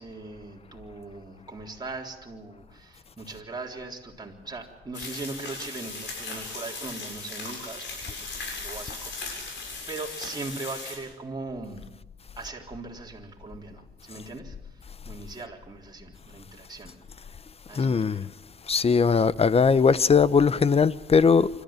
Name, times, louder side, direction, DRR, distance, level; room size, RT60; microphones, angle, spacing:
voice 1, 0.0-9.5 9.9-11.9 12.4-17.0 17.7-18.3, right 3 dB, 20° right, 3.8 m, -40 dB
sound 1, 4.9-11.0, left 3 dB, 65° left, 7.3 m, -37 dB
voice 2, 17.7-18.3 18.7-21.5, left 5 dB, 30° left, 0.7 m, -20 dB
26.0 x 13.5 x 9.0 m
cardioid pair, 90°, 20 cm